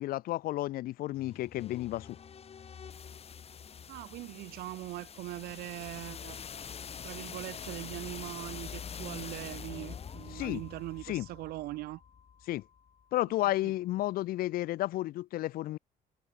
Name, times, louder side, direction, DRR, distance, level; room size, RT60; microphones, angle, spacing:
voice 1, 0.0-2.2 10.3-10.6 11.1-11.3 12.5-12.6 13.1-15.8, left 16 dB, 70° left, 0.6 m, -32 dB
sound 1, 1.1-13.0, left 7 dB, 40° left, 1.8 m, -45 dB
voice 2, 3.9-6.4 7.0-12.0 13.6-13.7, right 18 dB, 80° right, 1.1 m, -41 dB
cardioid pair, 90°, 16 cm